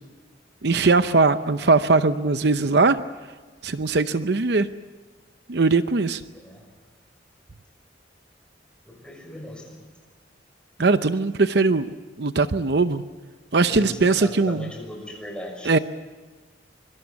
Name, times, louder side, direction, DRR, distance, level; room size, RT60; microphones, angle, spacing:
voice 1, 0.6-3.0 3.6-4.7 5.5-6.2 10.8-11.9 12.2-13.0 13.5-14.7 15.6-15.8, right 3 dB, 60° right, 11 dB, 0.7 m, -20 dB
voice 2, 6.3-6.6 8.8-9.8 13.7-15.7, left 1 dB, 5° left, 2 dB, 6.3 m, -38 dB
25.0 x 24.0 x 7.1 m, 1.4 s
head